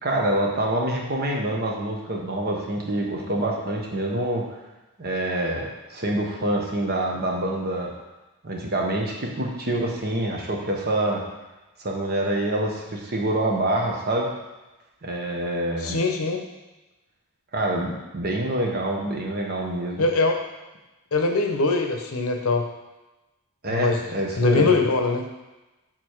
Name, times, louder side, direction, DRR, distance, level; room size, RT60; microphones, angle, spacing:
voice 1, 0.0-4.5 5.0-7.9 8.4-11.3 11.8-14.3 15.0-16.0 17.5-20.1 23.6-24.7, right 1 dB, 45° right, 0 dB, 1.0 m, -26 dB
voice 2, 15.8-16.4 20.0-20.4 21.1-22.7 23.7-24.0 24.4-25.3, left 3 dB, 70° left, 4 dB, 0.8 m, -22 dB
6.6 x 4.0 x 4.5 m, 1.1 s
head